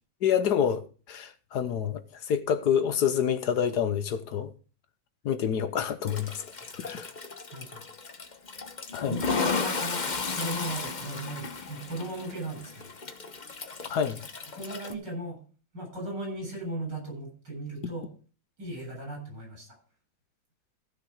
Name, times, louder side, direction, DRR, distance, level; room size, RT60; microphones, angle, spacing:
voice 1, 0.2-4.5 5.2-6.4 6.8-7.1 8.9-9.2 13.9-14.2, left 8 dB, 60° left, 1.3 m, -27 dB
Toilet flush, 6.1-14.9, left 4 dB, 30° left, 0.8 m, -34 dB
voice 2, 7.5-7.9 9.1-10.0 10.3-12.9 14.5-15.4 15.7-18.1 18.6-19.8, right 1 dB, 60° right, 8.5 m, -37 dB
15.0 x 6.8 x 4.9 m
omnidirectional pair, 2.1 m